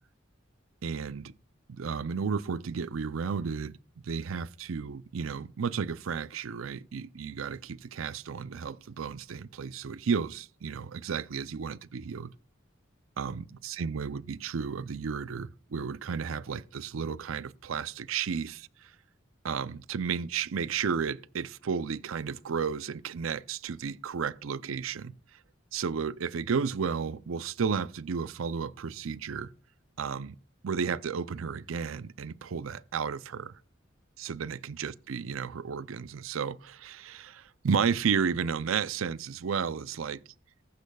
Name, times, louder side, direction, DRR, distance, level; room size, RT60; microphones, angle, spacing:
voice 1, 0.8-1.3 1.7-3.8 4.0-12.3 13.2-18.9 19.4-25.1 25.7-29.5 30.0-30.4 30.6-33.6 34.2-40.2, right 6 dB, 90° right, 0.5 m, -33 dB
15.0 x 11.5 x 2.3 m
head